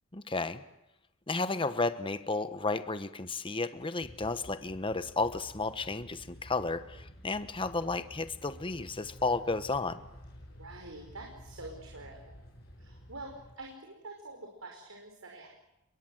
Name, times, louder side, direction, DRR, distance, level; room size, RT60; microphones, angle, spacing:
voice 1, 0.1-0.6 1.3-10.0, left 3 dB, 25° left, 12 dB, 1.1 m, -33 dB
sound 1, 4.0-13.5, equal, 50° left, 7.8 m, -51 dB
voice 2, 10.6-12.3 12.8-15.5, right 2 dB, 80° right, 1 dB, 5.2 m, -46 dB
29.5 x 23.0 x 7.9 m, 0.93 s
head